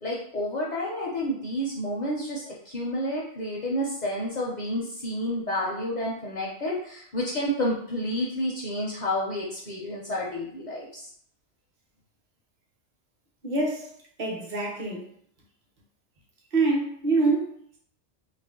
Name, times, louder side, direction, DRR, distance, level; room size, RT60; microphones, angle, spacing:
voice 1, 0.0-11.1, equal, 50° left, -4 dB, 0.5 m, -30 dB
voice 2, 13.4-13.9 14.2-15.1 16.5-17.8, right 3 dB, 45° right, -1 dB, 0.8 m, -26 dB
2.5 x 2.0 x 3.6 m, 0.63 s
omnidirectional pair, 1.2 m